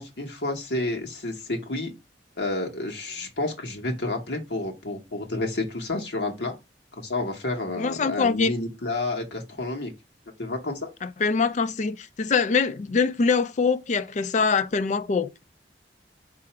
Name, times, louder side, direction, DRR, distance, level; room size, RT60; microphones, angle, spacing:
voice 1, 0.0-1.9 2.4-6.5 6.9-9.9 10.4-10.9, left 2 dB, 75° left, 1.1 m, -30 dB
voice 2, 7.8-8.5 11.0-15.4, left 5 dB, 45° left, 0.4 m, -24 dB
4.8 x 2.5 x 4.2 m
head